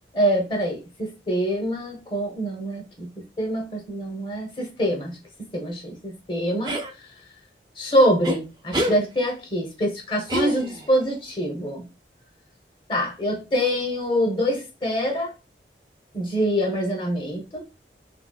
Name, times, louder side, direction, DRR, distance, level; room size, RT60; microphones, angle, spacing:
voice 1, 0.1-3.1 3.4-5.2 5.5-6.7 7.8-11.9 12.9-15.3 16.1-17.6, equal, 30° left, 0.8 m, -25 dB
sound 1, 6.6-6.9 8.2-8.4 8.7-9.0 10.3-10.9, equal, 25° right, 0.4 m, -26 dB
2.8 x 2.7 x 2.3 m
head